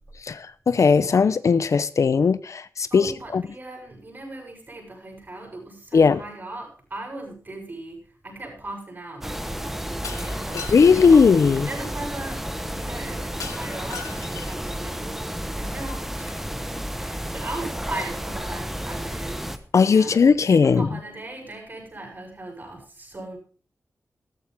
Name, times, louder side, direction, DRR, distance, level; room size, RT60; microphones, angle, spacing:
voice 1, 0.2-3.4 5.9-6.2 10.5-11.7 19.7-20.9, left 5 dB, 65° left, 0.7 m, -18 dB
voice 2, 2.9-11.2 11.5-16.4 17.0-23.4, right 2 dB, 35° right, 6.8 m, -38 dB
sound 1, 9.2-19.6, equal, 5° right, 1.1 m, -32 dB
Shatter, 10.0-11.2 13.4-14.7, left 6 dB, 90° left, 1.9 m, -38 dB
14.0 x 14.0 x 3.5 m
wide cardioid pair, 135°, 6 cm